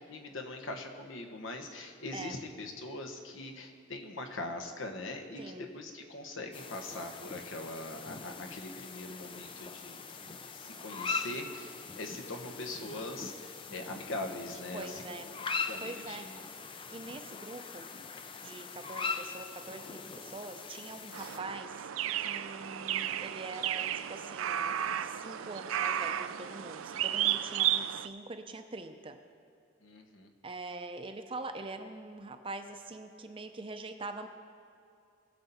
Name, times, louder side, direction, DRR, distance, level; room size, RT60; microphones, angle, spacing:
voice 1, 0.1-10.0 10.4-14.9 15.3-16.4 29.8-30.3, left 2 dB, 75° left, 3 dB, 1.2 m, -42 dB
voice 2, 5.4-5.7 14.7-15.3 15.6-16.3 16.9-17.9 18.4-21.9 22.2-23.8 24.1-29.2 30.4-34.3, right 2 dB, 25° right, 7 dB, 0.6 m, -44 dB
sound 1, 6.5-21.4, left 4 dB, 25° left, 0.4 m, -41 dB
sound 2, 21.1-28.1, right 11 dB, 85° right, 0.4 m, -33 dB
20.0 x 6.9 x 4.2 m, 2.6 s
head